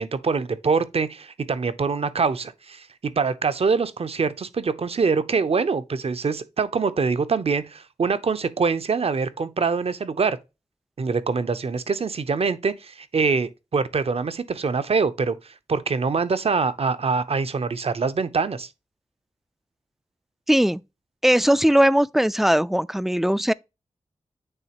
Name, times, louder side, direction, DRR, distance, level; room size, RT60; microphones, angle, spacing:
voice 1, 0.0-10.4 11.0-18.7, right 5 dB, 60° right, 0.7 m, -24 dB
voice 2, 20.5-20.8 21.2-23.5, equal, ahead, 0.3 m, -19 dB
9.0 x 3.6 x 2.9 m
cardioid pair, 55°, 12 cm